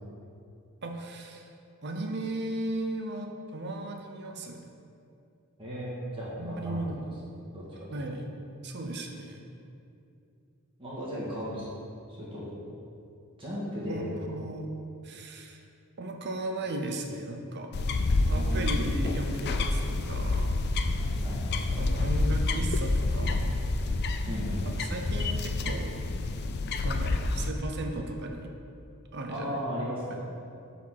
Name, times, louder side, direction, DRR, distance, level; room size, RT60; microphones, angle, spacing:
voice 1, 0.8-1.5 1.8-4.6 6.4-7.3 7.9-8.3 8.6-9.4 13.9-14.7 15.0-15.6 16.0-17.7 18.3-20.5 21.8-23.6 24.7-26.0 26.8-28.5 29.1-29.6 30.1-30.2, right 1 dB, 50° right, 3 dB, 0.7 m, -36 dB
voice 2, 5.6-6.8 7.5-7.9 9.3-9.4 10.8-11.6 12.1-12.5 13.4-14.1 18.3-18.8 21.0-21.8 24.3-24.8 29.3-30.2, equal, 25° right, -8 dB, 1.9 m, -36 dB
sound 1, 17.7-27.5, left 2 dB, 50° left, 0.4 m, -28 dB
7.5 x 4.3 x 5.8 m, 2.6 s
head